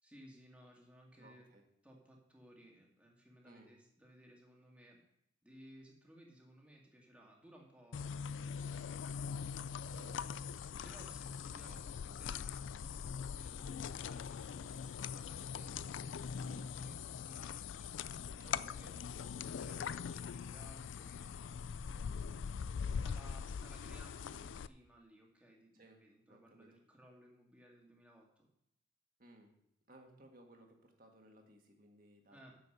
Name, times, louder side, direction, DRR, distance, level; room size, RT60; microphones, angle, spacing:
voice 1, 0.0-1.5 1.8-5.0 5.4-9.9 10.2-10.4 10.8-19.2 19.6-21.6 22.8-28.5 30.1-30.2 32.3-32.6, right 1 dB, 5° right, -1 dB, 2.1 m, -61 dB
voice 2, 1.2-1.6 3.4-3.7 9.9-10.3 11.6-11.8 16.4-16.7 18.4-19.4 25.7-26.0 26.3-26.8 29.2-29.5 29.9-32.4, right 1 dB, 45° right, 3 dB, 1.8 m, -61 dB
sound 1, 7.9-24.7, left 6 dB, 75° left, 0.4 m, -42 dB
9.6 x 6.9 x 6.6 m, 0.77 s
head